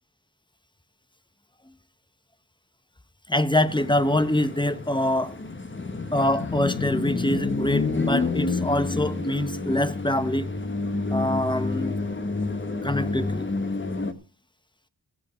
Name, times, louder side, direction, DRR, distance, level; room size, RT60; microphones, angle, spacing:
voice 1, 3.3-5.4 6.1-10.5 11.1-12.0 12.8-13.5, left 1 dB, 10° left, 1.0 m, -25 dB
sound 1, 3.7-14.1, left 3 dB, 30° left, 1.6 m, -29 dB
15.5 x 7.9 x 5.0 m
cardioid pair, 60°, 42 cm